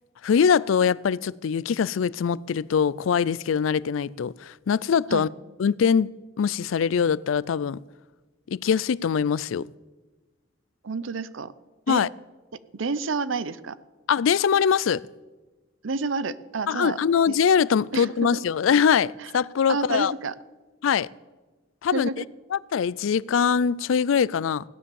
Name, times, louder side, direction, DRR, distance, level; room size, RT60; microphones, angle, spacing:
voice 1, 0.2-5.3 5.6-6.1 6.4-7.8 8.5-9.7 11.9-12.1 14.1-15.0 16.7-20.1 20.8-21.1 21.8-22.1 22.5-24.6, left 7 dB, 85° left, 0.4 m, -22 dB
voice 2, 10.8-11.5 11.9-12.0 12.7-13.8 15.8-17.0 17.3-17.4 17.9-18.4 19.2-19.3 19.7-20.3 21.9-22.3, right 4 dB, 80° right, 0.7 m, -29 dB
17.0 x 10.0 x 7.0 m
head